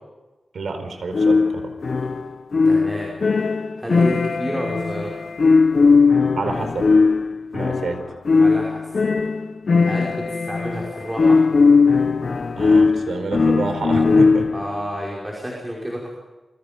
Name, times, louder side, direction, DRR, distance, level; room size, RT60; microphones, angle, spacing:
voice 1, 0.5-1.6 6.3-6.9 7.5-8.0 12.6-14.4, right 3 dB, 85° right, 7 dB, 4.6 m, -28 dB
sound 1, 1.1-14.7, left 4 dB, 55° left, 1.0 m, -18 dB
voice 2, 2.6-3.1 3.8-5.1 8.1-8.9 9.8-11.5 14.5-16.2, equal, 10° right, -3 dB, 5.6 m, -30 dB
29.0 x 24.0 x 5.4 m, 1.1 s
wide cardioid pair, 130°, 0 cm